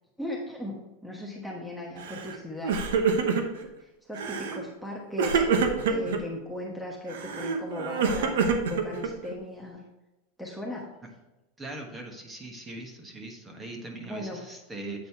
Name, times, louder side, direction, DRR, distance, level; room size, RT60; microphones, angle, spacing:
voice 1, 0.2-2.8 3.8-9.8 10.4-10.9 14.0-14.4, left 1 dB, ahead, -2 dB, 1.2 m, -38 dB
Crying sobbing, 2.0-2.4 2.6-3.7 4.2-4.6 5.2-6.2 7.1-9.3, right 5 dB, 75° right, 0.9 m, -26 dB
voice 2, 11.6-15.1, right 2 dB, 20° right, 2 dB, 1.4 m, -40 dB
8.4 x 4.0 x 4.5 m, 1.0 s
hypercardioid pair, 115°, 0 cm